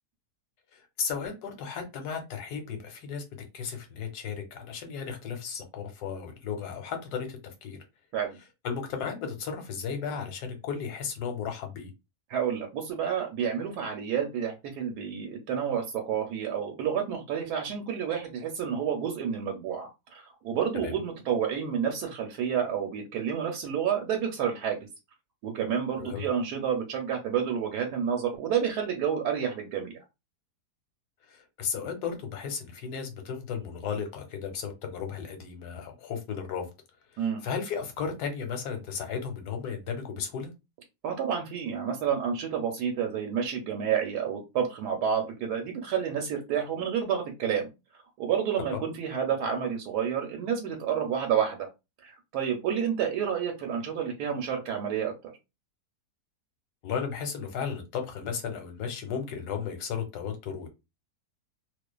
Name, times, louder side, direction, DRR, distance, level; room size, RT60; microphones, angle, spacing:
voice 1, 0.7-3.2 3.5-7.8 8.6-11.9 20.7-20.9 26.0-26.3 31.3-36.7 37.1-40.5 48.7-48.8 56.8-60.7, left 6 dB, 85° left, 1.2 m, -35 dB
voice 2, 12.3-24.9 25.4-30.0 37.2-37.4 41.0-47.7 48.2-51.7 52.0-55.1, right 8 dB, 80° right, 1.1 m, -29 dB
2.4 x 2.4 x 2.2 m
omnidirectional pair, 1.7 m